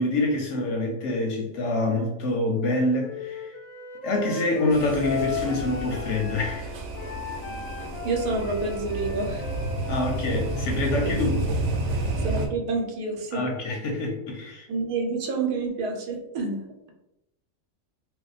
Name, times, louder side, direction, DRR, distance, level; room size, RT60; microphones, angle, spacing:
voice 1, 0.0-3.5 4.0-6.7 9.9-11.3 13.3-14.7, left 2 dB, 65° left, 0.8 m, -26 dB
Wind instrument woodwind instrument, 3.0-6.6 6.9-10.7, left 6 dB, 85° left, 0.3 m, -36 dB
sound 1, 4.7-12.5, right 1 dB, 65° right, 0.8 m, -30 dB
voice 2, 8.0-9.5 9.9-10.0 11.0-11.1 12.1-13.4 14.7-16.9, right 3 dB, 85° right, 1.2 m, -29 dB
2.6 x 2.2 x 3.9 m
omnidirectional pair, 1.5 m